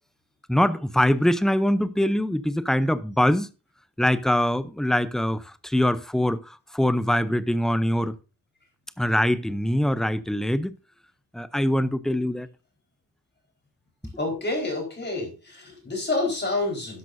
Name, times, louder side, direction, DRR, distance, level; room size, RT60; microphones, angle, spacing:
voice 1, 0.5-3.5 4.0-8.1 9.0-10.8 11.3-12.5, left 1 dB, ahead, 0.6 m, -23 dB
voice 2, 14.2-17.0, left 2 dB, 30° left, 4.5 m, -28 dB
12.5 x 10.5 x 2.7 m
wide cardioid pair, 175°, 34 cm